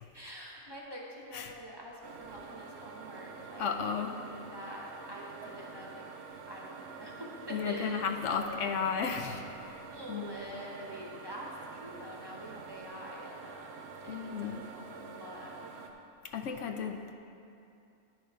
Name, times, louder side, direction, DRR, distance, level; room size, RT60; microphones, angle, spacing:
voice 1, 0.1-3.9 4.2-6.0 6.5-8.4 9.9-15.7, equal, 20° right, -3 dB, 0.8 m, -46 dB
sound 1, 2.0-15.9, right 5 dB, 75° right, 1.0 m, -47 dB
voice 2, 3.6-4.2 7.5-9.4 10.1-10.3 14.1-14.6 16.3-17.1, left 6 dB, 75° left, 5 dB, 0.9 m, -33 dB
9.8 x 6.3 x 4.6 m, 2.6 s
omnidirectional pair, 1.3 m